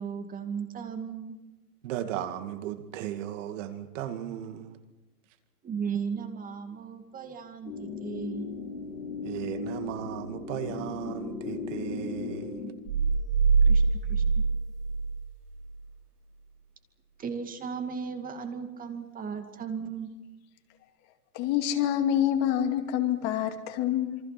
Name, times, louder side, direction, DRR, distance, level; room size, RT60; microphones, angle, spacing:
voice 1, 0.0-1.4 5.6-8.5 13.7-13.8 14.1-14.2 17.2-20.1, right 6 dB, 15° right, 2.4 m, -36 dB
voice 2, 1.8-4.8 9.2-12.6, right 10 dB, 50° right, 2.3 m, -36 dB
sound 1, 7.6-12.7, left 4 dB, 70° left, 7.2 m, -36 dB
sound 2, 12.9-15.8, right 5 dB, 75° right, 4.5 m, -24 dB
voice 3, 21.3-24.2, left 10 dB, 35° left, 2.4 m, -26 dB
27.5 x 24.0 x 6.0 m
hypercardioid pair, 145°, 48 cm